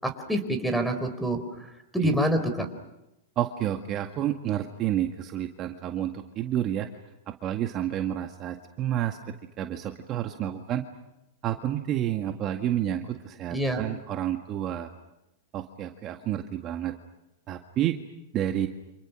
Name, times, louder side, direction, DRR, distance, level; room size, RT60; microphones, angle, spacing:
voice 1, 0.0-1.4 1.9-2.7 13.5-13.8, right 1 dB, ahead, 8 dB, 4.8 m, -26 dB
voice 2, 3.4-6.9 7.3-10.8 11.4-14.9 15.5-16.9 17.5-18.0 18.3-18.7, right 11 dB, 35° right, 5 dB, 1.8 m, -30 dB
30.0 x 27.5 x 6.4 m, 0.89 s
hypercardioid pair, 125°, 0 cm